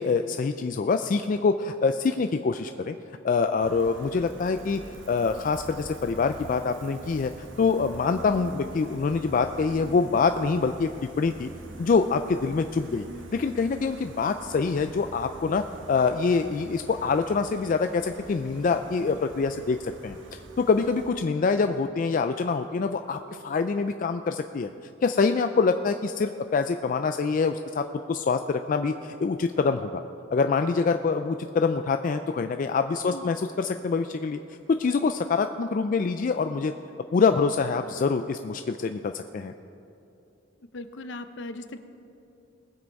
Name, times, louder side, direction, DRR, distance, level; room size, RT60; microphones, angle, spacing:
voice 1, 0.0-2.9 3.2-4.8 5.1-7.3 7.6-10.9 11.2-11.5 11.8-13.1 13.3-24.7 25.0-30.0 30.3-34.4 34.7-36.7 37.1-39.5, left 4 dB, 45° left, 8 dB, 0.3 m, -25 dB
Gull seagull, 3.6-21.1, right 1 dB, 80° right, 1.2 m, -45 dB
voice 2, 40.7-41.8, left 2 dB, 65° left, 10 dB, 0.7 m, -38 dB
20.0 x 7.6 x 4.7 m, 2.9 s
head